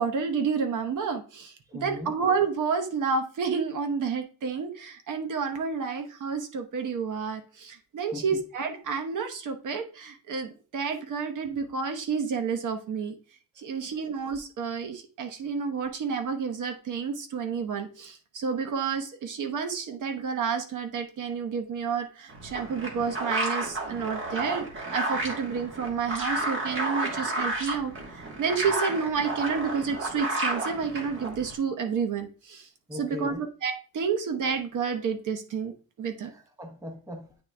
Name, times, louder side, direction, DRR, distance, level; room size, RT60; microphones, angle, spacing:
voice 1, 0.0-1.5 1.8-13.2 13.6-32.7 33.0-35.7 36.0-36.3, right 5 dB, 55° right, 6 dB, 0.9 m, -30 dB
voice 2, 1.6-2.1 8.1-8.4 15.4-15.5 32.9-33.4 36.3-37.4, left 1 dB, 10° right, 4 dB, 0.8 m, -40 dB
sound 1, 22.3-31.5, right 2 dB, 35° right, 1.4 m, -31 dB
8.8 x 3.7 x 3.3 m, 0.37 s
cardioid pair, 180°, 36 cm